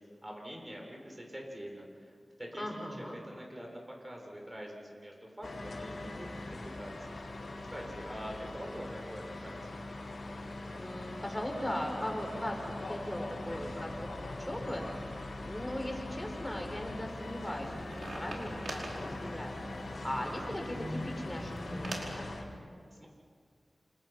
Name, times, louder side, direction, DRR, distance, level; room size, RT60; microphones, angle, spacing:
voice 1, 0.2-7.3 7.7-9.8 22.9-23.1, equal, 20° right, 0 dB, 7.1 m, -45 dB
voice 2, 2.6-3.2 10.8-17.7 18.1-19.6 20.0-22.3, left 1 dB, 15° left, 2 dB, 5.8 m, -39 dB
sound 1, 5.4-22.4, left 2 dB, 75° left, 4.4 m, -42 dB
sound 2, 17.1-22.2, right 1 dB, 70° right, 4.8 m, -43 dB
29.0 x 28.0 x 6.0 m, 2.1 s
wide cardioid pair, 60°, 0 cm